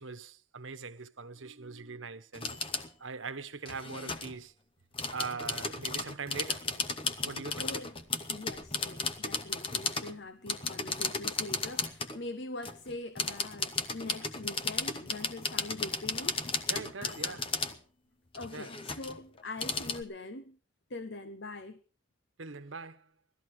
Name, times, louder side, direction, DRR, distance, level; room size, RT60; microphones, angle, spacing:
voice 1, 0.0-2.6 3.0-4.5 5.1-6.7 7.2-7.7 16.7-17.4 18.5-18.7 22.4-23.1, right 4 dB, 75° right, 1.2 m, -41 dB
sound 1, 2.3-2.9 3.6-4.3 4.9-10.1 10.5-12.2 12.6-17.7 18.3-20.0, left 4 dB, 25° left, 1.2 m, -35 dB
voice 2, 7.5-8.0 8.3-16.4 17.0-17.4 18.3-20.6 20.9-21.8, left 2 dB, 60° left, 0.9 m, -43 dB
18.5 x 13.5 x 4.8 m
head